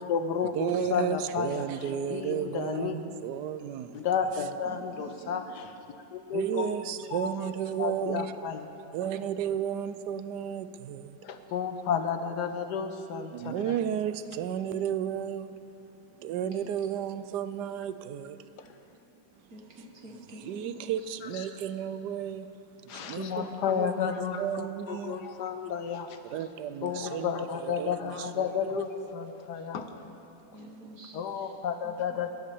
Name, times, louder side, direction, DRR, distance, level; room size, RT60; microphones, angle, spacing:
voice 1, 0.0-1.7 2.1-3.0 3.9-5.7 6.1-6.7 7.1-7.3 7.8-8.7 11.2-13.8 18.6-18.7 21.3-21.5 22.9-26.2 26.8-29.9 31.1-32.3, left 6 dB, 70° left, 7 dB, 1.5 m, -32 dB
voice 2, 0.5-4.1 6.3-8.3 8.9-11.2 13.3-15.6 16.2-18.5 20.4-22.5 22.8-24.1 24.4-25.2 26.3-27.3 27.6-28.5, right 9 dB, 75° right, 12 dB, 1.1 m, -33 dB
voice 3, 4.6-5.4 5.9-6.1 6.6-6.8 11.3-11.4 16.1-16.7 18.6-18.8 19.1-19.2 19.5-21.1 26.7-26.9 29.5-29.6 30.1-30.2 30.4-31.5 31.8-32.2, right 1 dB, 55° right, 1 dB, 2.0 m, -49 dB
21.5 x 8.5 x 7.0 m, 2.8 s
omnidirectional pair, 2.0 m